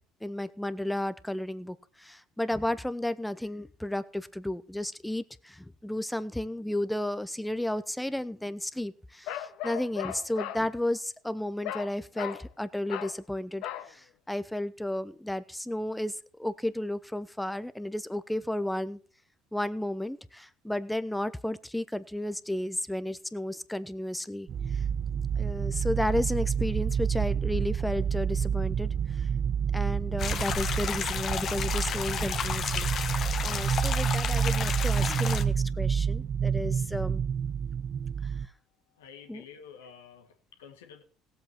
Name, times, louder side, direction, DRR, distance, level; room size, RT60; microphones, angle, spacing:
voice 1, 0.2-19.0 19.5-24.8 25.4-29.3 29.7-37.2 38.2-38.3 39.3-39.4, left 1 dB, 5° left, 0.8 m, -33 dB
Bark, 9.3-10.6 11.6-11.9 12.2-12.4 12.9-13.2 13.6-13.9, left 11 dB, 70° left, 1.0 m, -36 dB
sound 1, 24.5-38.5, right 7 dB, 50° right, 0.6 m, -29 dB
sound 2, 30.2-35.4, left 8 dB, 50° left, 1.3 m, -32 dB
voice 2, 39.0-41.0, left 7 dB, 90° left, 1.9 m, -50 dB
17.0 x 7.8 x 4.5 m
hypercardioid pair, 70°, 0 cm